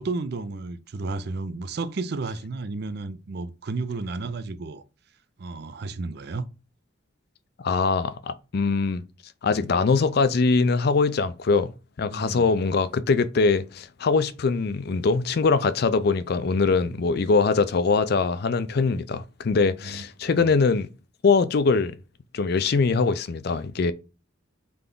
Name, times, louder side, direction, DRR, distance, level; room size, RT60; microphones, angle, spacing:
voice 1, 0.0-4.8 5.4-6.4 12.0-12.4 19.8-20.0 20.3-20.5, right 3 dB, 55° right, 0.4 m, -32 dB
voice 2, 7.6-9.0 9.4-11.7 12.0-20.9 21.2-22.0 22.3-23.9, left 4 dB, 55° left, 0.4 m, -22 dB
3.7 x 3.4 x 3.8 m
head